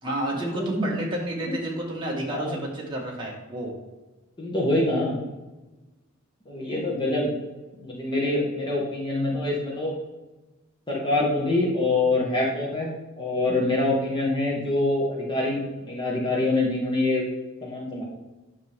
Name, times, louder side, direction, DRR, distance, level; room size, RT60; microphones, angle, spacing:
voice 1, 0.0-3.7, right 1 dB, 25° right, -3 dB, 2.0 m, -30 dB
voice 2, 0.6-1.0 2.3-2.5 4.4-5.2 6.5-7.3 7.8-9.9 10.9-12.9 13.2-17.2 17.6-18.0, left 2 dB, 25° left, -3 dB, 1.7 m, -25 dB
9.6 x 6.2 x 3.7 m, 1.1 s
head